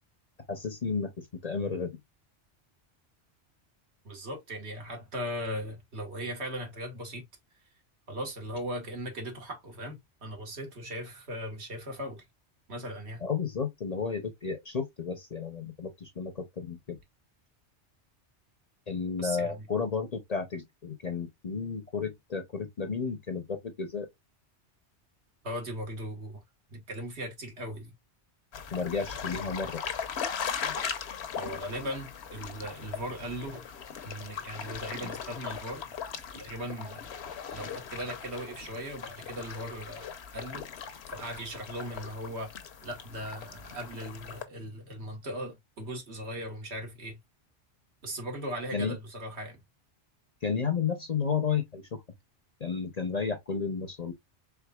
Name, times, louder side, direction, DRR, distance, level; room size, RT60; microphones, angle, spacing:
voice 1, 0.5-2.0 13.2-17.0 18.9-24.1 28.7-29.8 48.7-49.0 50.4-52.0 52.6-54.1, left 5 dB, 40° left, 0.7 m, -32 dB
voice 2, 4.1-7.3 8.1-12.3 12.7-13.2 19.2-19.6 25.4-26.4 26.7-27.9 31.4-33.6 34.0-35.9 36.4-37.1 37.5-40.7 41.1-42.5 42.8-47.2 48.0-49.6, equal, 65° right, 1.7 m, -38 dB
sound 1, 28.5-44.4, left 7 dB, 65° left, 1.0 m, -39 dB
Packing tape duct tape, 32.2-32.3 33.3-33.6 34.7-35.2 36.1-36.4 38.0-38.2 38.5-38.7 39.0-39.4, equal, 85° right, 2.4 m, -50 dB
4.6 x 3.6 x 2.2 m
omnidirectional pair, 1.2 m